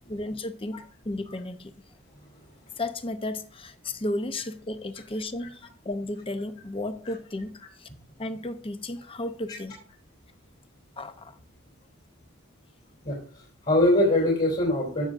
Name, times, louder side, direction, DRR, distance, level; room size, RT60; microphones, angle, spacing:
voice 1, 0.1-1.7 2.8-7.9 8.2-9.8 11.0-11.4, left 1 dB, 25° left, 0.7 m, -34 dB
voice 2, 13.0-15.1, left 1 dB, 45° left, 3.3 m, -23 dB
15.0 x 6.1 x 2.6 m
head